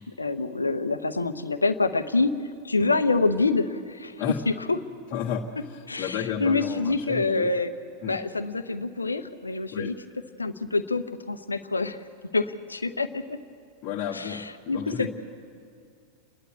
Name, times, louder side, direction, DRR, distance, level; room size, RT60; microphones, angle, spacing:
voice 1, 0.0-2.4 2.6-4.2 4.7-4.8 5.9-7.7 8.1-9.9 10.4-12.0 12.3-13.4 14.1-14.4 14.7-15.1, left 3 dB, 80° left, 10 dB, 0.9 m, -26 dB
voice 2, 5.1-7.5 8.0-8.2 9.7-10.0 13.8-15.1, left 8 dB, 40° left, -5 dB, 1.6 m, -32 dB
29.0 x 11.5 x 8.3 m, 2.3 s
figure-of-eight pair, 90°, 0 cm